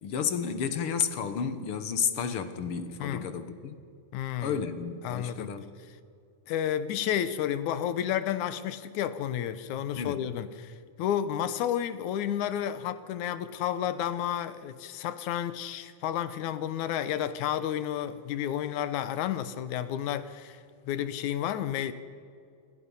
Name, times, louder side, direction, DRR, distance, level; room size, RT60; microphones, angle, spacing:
voice 1, 0.0-3.8 4.4-5.7 10.0-10.2, left 7 dB, 55° left, 10 dB, 1.9 m, -31 dB
voice 2, 4.1-4.6 5.0-5.5 6.5-20.6 20.9-21.9, left 10 dB, 80° left, 13 dB, 2.3 m, -31 dB
27.5 x 26.0 x 5.6 m, 2.4 s
omnidirectional pair, 3.4 m